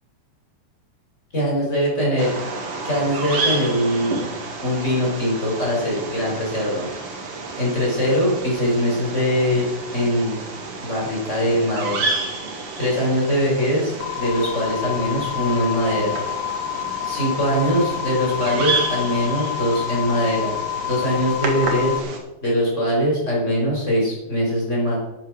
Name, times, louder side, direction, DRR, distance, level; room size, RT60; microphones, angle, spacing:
voice 1, 1.3-2.3 2.8-4.2 4.6-6.9 7.6-10.4 10.8-12.0 12.8-16.1 17.0-22.0 22.4-25.0, equal, 15° left, -4 dB, 5.2 m, -22 dB
Bird vocalization bird call bird song, 2.2-22.2, right 3 dB, 45° right, 2.0 m, -30 dB
sound 1, 14.0-22.0, left 14 dB, 85° left, 2.6 m, -28 dB
11.0 x 8.6 x 6.3 m, 0.96 s
omnidirectional pair, 5.0 m